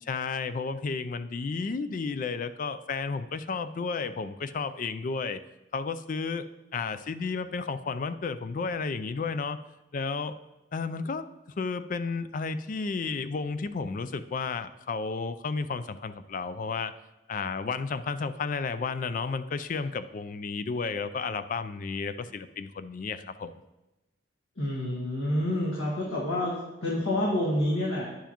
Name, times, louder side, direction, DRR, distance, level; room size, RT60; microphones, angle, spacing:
voice 1, 0.0-5.4 5.7-6.4 6.7-9.6 9.9-10.4 10.7-11.3 11.6-16.9 17.3-23.5, left 4 dB, 40° left, 12 dB, 0.3 m, -32 dB
voice 2, 24.6-26.5 26.8-28.0, left 1 dB, 85° left, -5 dB, 1.6 m, -28 dB
10.0 x 7.0 x 2.9 m, 0.99 s
head